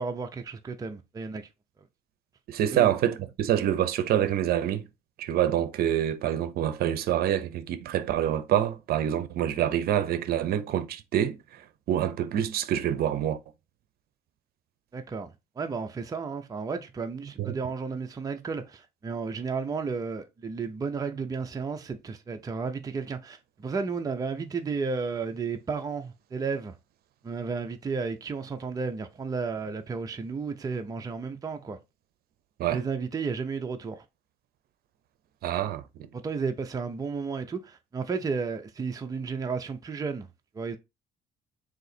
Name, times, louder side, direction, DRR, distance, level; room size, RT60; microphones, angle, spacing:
voice 1, 0.0-1.5 2.7-2.9 14.9-26.7 27.2-31.8 32.7-34.0 36.1-40.3 40.5-40.8, right 5 dB, 20° right, 0.5 m, -33 dB
voice 2, 2.5-4.8 5.2-11.6 11.9-13.4 17.4-17.5 32.6-32.8 35.4-35.8, right 11 dB, 65° right, 0.6 m, -26 dB
3.8 x 2.8 x 4.2 m
cardioid pair, 110°, 17 cm